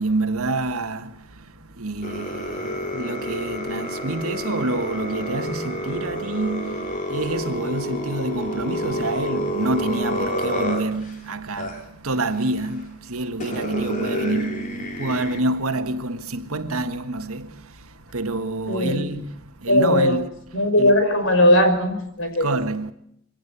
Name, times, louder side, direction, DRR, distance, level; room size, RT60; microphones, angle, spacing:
voice 1, 0.0-21.0 22.4-22.9, right 2 dB, 75° right, 1.7 m, -27 dB
sound 1, 2.0-11.2 11.6-11.8 12.8-12.9 13.4-15.4, left 1 dB, 35° left, 3.5 m, -29 dB
voice 2, 18.7-19.0 19.7-20.1 20.5-22.6, left 1 dB, 60° left, 5.3 m, -18 dB
23.5 x 17.0 x 8.4 m
head